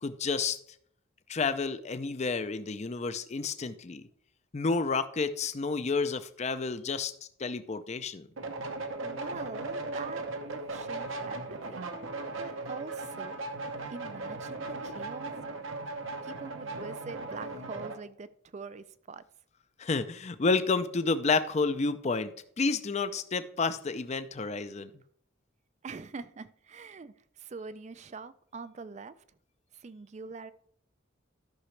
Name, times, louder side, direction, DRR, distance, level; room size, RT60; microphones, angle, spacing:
voice 1, 0.0-0.6 1.3-4.0 4.5-7.1 7.4-8.3 19.8-22.3 22.6-24.9, left 4 dB, 35° left, 12 dB, 0.5 m, -30 dB
sound 1, 8.4-18.0, right 3 dB, 80° right, 1.0 m, -37 dB
voice 2, 8.5-11.8 12.4-13.4 13.9-15.5 16.2-19.2 25.8-29.2 29.7-30.5, right 4 dB, 35° right, 14 dB, 0.4 m, -44 dB
13.0 x 6.0 x 3.3 m, 0.66 s
head